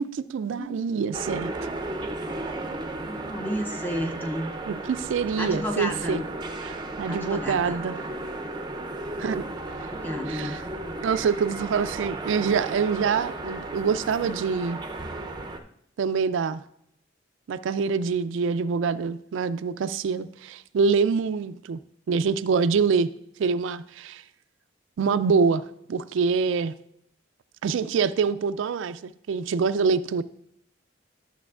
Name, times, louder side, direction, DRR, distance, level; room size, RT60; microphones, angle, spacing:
voice 1, 0.0-1.5 4.7-6.2 6.6-8.0 9.2-9.5 9.8-9.9 10.3-10.6 11.0-14.8 16.0-16.6 17.5-21.8 22.1-23.1 23.4-24.2 25.0-25.6 25.9-26.8 27.6-30.2, right 5 dB, 70° right, 12 dB, 0.3 m, -25 dB
sound 1, 1.1-15.6, right 2 dB, 20° right, 0.5 m, -34 dB
voice 2, 3.1-4.5 5.4-6.2 7.1-7.8 9.9-10.6, equal, 10° left, 4 dB, 0.7 m, -31 dB
11.5 x 7.0 x 2.4 m, 0.74 s
head